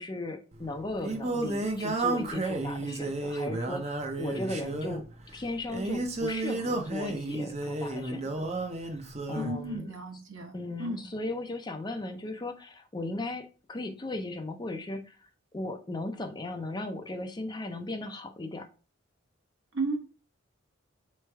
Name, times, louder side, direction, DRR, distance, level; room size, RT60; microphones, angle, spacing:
voice 1, 0.0-5.0 5.3-8.5 9.3-9.9 10.5-15.2 15.5-18.7, left 2 dB, 20° left, 6 dB, 0.4 m, -37 dB
Singing, 0.5-9.6, right 2 dB, 30° right, 0.6 m, -32 dB
voice 2, 9.3-11.0 19.7-20.0, right 2 dB, 65° right, 2 dB, 1.1 m, -34 dB
4.3 x 3.2 x 3.3 m, 0.36 s
head